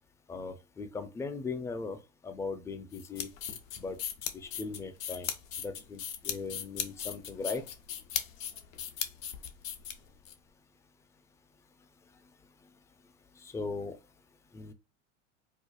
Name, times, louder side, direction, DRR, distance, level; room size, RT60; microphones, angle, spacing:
voice 1, 0.3-3.3 3.8-4.0 4.3-5.3 5.6-7.6 13.4-14.0 14.5-14.7, left 4 dB, 10° left, 0.3 m, -38 dB
sound 1, 2.9-10.3, left 9 dB, 80° left, 0.8 m, -38 dB
4.6 x 2.0 x 2.4 m
hypercardioid pair, 90°, 39 cm